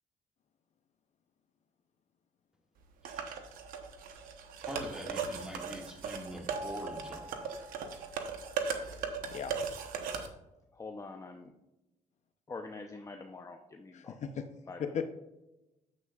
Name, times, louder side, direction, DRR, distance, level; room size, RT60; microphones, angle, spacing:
voice 1, 3.0-3.3 4.6-7.4, equal, 5° right, 1 dB, 1.9 m, -44 dB
sound 1, 3.0-10.3, right 6 dB, 90° right, 1.0 m, -38 dB
Mallet percussion, 6.5-8.5, right 1 dB, 45° right, 0.8 m, -46 dB
voice 2, 10.7-11.5 12.5-14.2 14.7-14.9, left 3 dB, 25° left, 4 dB, 0.7 m, -45 dB
voice 3, 13.9-14.4 14.8-15.1, left 7 dB, 55° left, 8 dB, 0.7 m, -36 dB
9.9 x 7.9 x 2.4 m, 0.97 s
cardioid pair, 90°, 14 cm